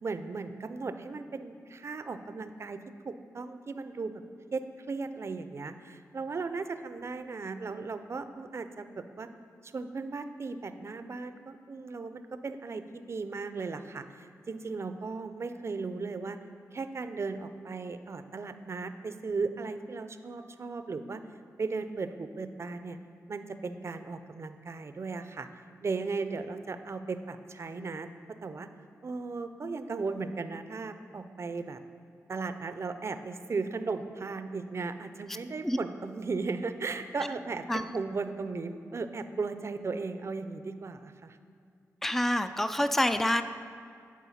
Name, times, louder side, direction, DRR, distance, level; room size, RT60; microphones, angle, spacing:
voice 1, 0.0-2.8 3.0-4.1 4.5-9.3 9.6-16.4 16.7-21.2 21.6-23.0 23.3-25.5 25.8-28.1 28.4-28.7 29.0-31.8 32.3-41.4, right 4 dB, 50° right, 10 dB, 0.5 m, -36 dB
voice 2, 42.0-43.4, left 1 dB, 5° left, 10 dB, 0.4 m, -27 dB
11.0 x 4.6 x 5.6 m, 2.3 s
cardioid pair, 65°, 6 cm